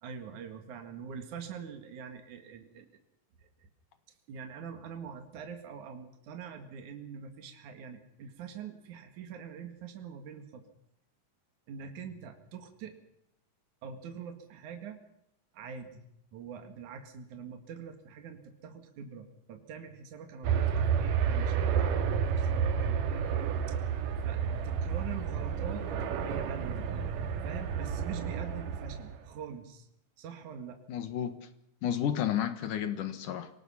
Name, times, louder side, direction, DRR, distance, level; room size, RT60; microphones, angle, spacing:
voice 1, 0.0-3.0 3.4-3.7 4.3-10.7 11.7-13.0 13.8-15.0 15.5-16.1 16.3-23.4 23.7-23.8 24.2-25.9 26.2-26.9 27.4-29.9 30.2-30.8, right 7 dB, 65° right, 3.4 m, -44 dB
sound 1, 20.4-29.2, right 7 dB, 80° right, 3.1 m, -30 dB
voice 2, 30.9-31.3 31.8-33.5, left 10 dB, 75° left, 3.0 m, -31 dB
26.0 x 18.5 x 5.8 m
omnidirectional pair, 3.7 m